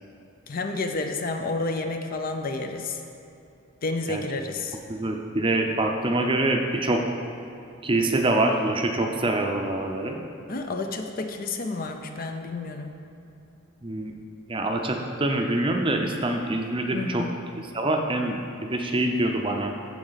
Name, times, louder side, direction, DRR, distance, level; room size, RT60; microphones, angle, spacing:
voice 1, 0.5-3.0 3.8-4.8 10.5-12.9 16.9-17.4, left 3 dB, 40° left, 5 dB, 0.5 m, -30 dB
voice 2, 4.9-7.2 7.8-10.2 13.8-14.1 14.5-17.2 17.7-19.7, right 2 dB, 25° right, 3 dB, 0.6 m, -25 dB
14.0 x 4.9 x 4.1 m, 2.8 s
head